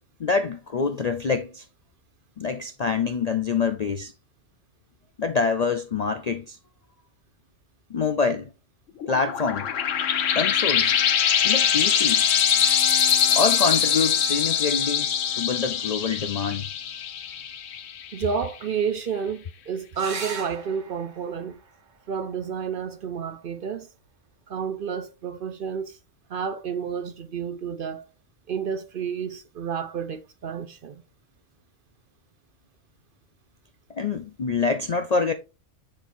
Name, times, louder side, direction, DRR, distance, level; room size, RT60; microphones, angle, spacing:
voice 1, 0.2-1.6 2.4-4.1 5.2-6.6 7.9-8.5 9.1-9.7 10.3-11.0 11.4-12.3 13.3-15.1 15.4-16.7 33.9-35.3, left 5 dB, 55° left, 0.4 m, -26 dB
sound 1, 9.0-18.2, left 8 dB, 80° left, 1.1 m, -23 dB
voice 2, 18.1-21.6 22.1-23.9 24.5-26.0 26.3-28.1 28.5-31.0, right 6 dB, 55° right, 0.7 m, -30 dB
sound 2, 19.9-25.0 26.9-27.5 30.9-31.1 31.4-31.5, right 5 dB, 75° right, 1.7 m, -41 dB
7.6 x 6.6 x 2.6 m
omnidirectional pair, 1.3 m